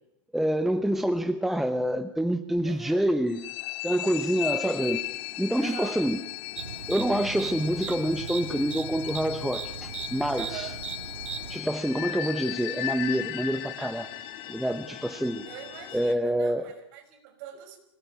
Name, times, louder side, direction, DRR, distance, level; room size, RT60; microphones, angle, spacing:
voice 1, 0.3-3.4 3.8-5.0 5.4-6.2 6.9-10.7 11.5-14.1 14.5-15.5 15.9-16.7, right 1 dB, ahead, 10 dB, 0.8 m, -27 dB
voice 2, 2.6-3.1 4.0-4.3 5.6-6.0 10.4-10.8 15.5-17.8, right 10 dB, 45° right, 6 dB, 5.8 m, -43 dB
sound 1, 3.3-16.1, left 15 dB, 35° left, 2.0 m, -37 dB
sound 2, 6.6-11.6, right 7 dB, 80° right, 3.6 m, -38 dB
25.0 x 18.5 x 9.2 m, 0.80 s
hypercardioid pair, 145°, 16 cm